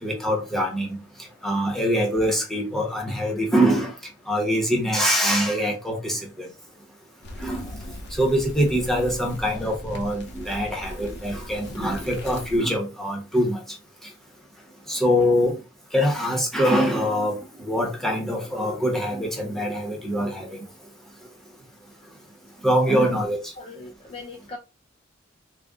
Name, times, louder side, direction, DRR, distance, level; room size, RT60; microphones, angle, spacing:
voice 1, 0.0-1.0 1.4-3.9 4.3-6.5 7.4-7.7 8.1-13.6 14.9-15.5 15.9-20.5 22.6-23.5, equal, ahead, 1.0 m, -23 dB
sound 1, 7.2-12.6, left 1 dB, 55° left, 0.7 m, -39 dB
voice 2, 23.6-24.6, left 3 dB, 30° left, 0.4 m, -39 dB
3.8 x 2.3 x 3.5 m
head